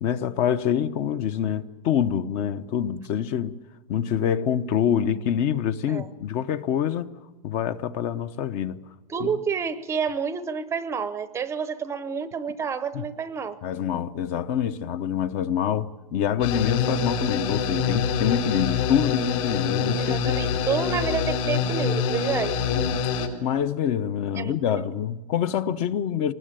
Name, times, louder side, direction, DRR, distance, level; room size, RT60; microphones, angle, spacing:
voice 1, 0.0-3.5 3.9-7.1 7.4-8.8 9.2-9.3 12.9-13.0 13.6-20.7 22.7-23.0 23.4-26.3, left 9 dB, 35° left, 0.9 m, -26 dB
voice 2, 9.1-13.6 18.3-18.5 20.0-22.6 24.3-24.9, right 6 dB, 15° right, 0.7 m, -29 dB
sound 1, 16.4-23.3, left 6 dB, 60° left, 4.7 m, -25 dB
24.0 x 20.0 x 9.1 m
supercardioid pair, 160°, 20 cm